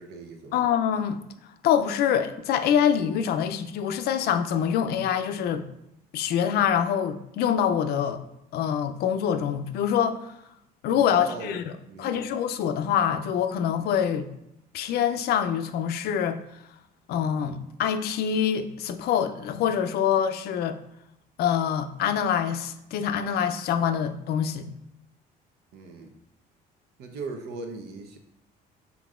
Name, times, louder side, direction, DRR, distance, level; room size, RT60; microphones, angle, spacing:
voice 1, 0.0-0.6 11.1-12.3 25.7-26.1 27.0-28.2, right 4 dB, 75° right, 5 dB, 0.8 m, -39 dB
voice 2, 0.5-5.6 6.1-8.2 8.5-10.4 10.8-11.7 12.0-14.3 14.7-16.6 17.1-20.8 21.4-24.7, left 8 dB, 70° left, 9 dB, 0.4 m, -25 dB
5.9 x 3.7 x 2.4 m, 0.82 s
cardioid pair, 110°, 17 cm